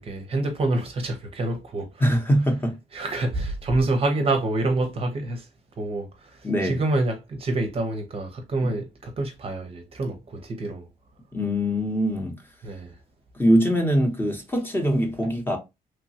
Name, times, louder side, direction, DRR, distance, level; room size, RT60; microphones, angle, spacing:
voice 1, 0.0-2.0 2.9-5.5 5.8-10.9 12.6-12.9, right 2 dB, 40° right, 0.6 m, -27 dB
voice 2, 2.0-2.7 6.4-6.8 11.3-12.3 13.4-15.6, equal, 15° left, 0.8 m, -22 dB
3.1 x 2.2 x 2.7 m
cardioid pair, 110°, 16 cm